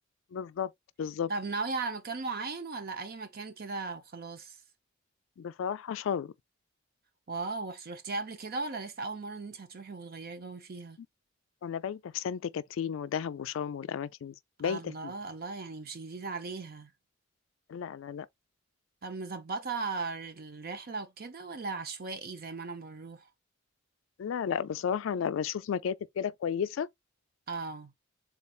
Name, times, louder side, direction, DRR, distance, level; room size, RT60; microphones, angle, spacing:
voice 1, 0.3-0.7 1.0-1.3 5.4-6.3 11.6-15.1 17.7-18.3 24.2-26.9, left 7 dB, 70° left, 0.3 m, -33 dB
voice 2, 1.3-4.6 7.3-11.0 14.6-16.9 19.0-23.3 27.5-27.9, right 3 dB, 50° right, 0.7 m, -37 dB
3.8 x 2.3 x 4.3 m
head